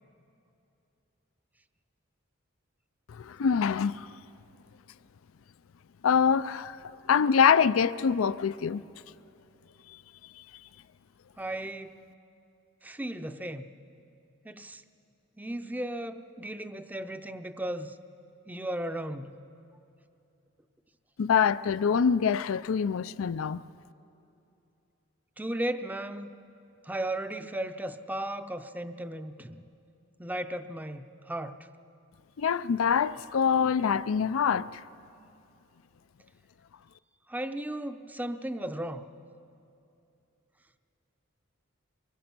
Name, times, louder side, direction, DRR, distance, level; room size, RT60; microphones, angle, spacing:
voice 1, 3.1-4.1 6.0-6.8 7.1-8.8 21.2-23.6 32.4-34.8, left 6 dB, 85° left, 0.4 m, -25 dB
voice 2, 11.4-11.9 12.8-13.7 14.4-14.8 15.4-18.0 18.5-19.3 25.4-26.3 26.8-29.6 30.2-31.6 37.3-39.1, right 1 dB, 10° right, 0.6 m, -35 dB
24.0 x 22.0 x 6.0 m
head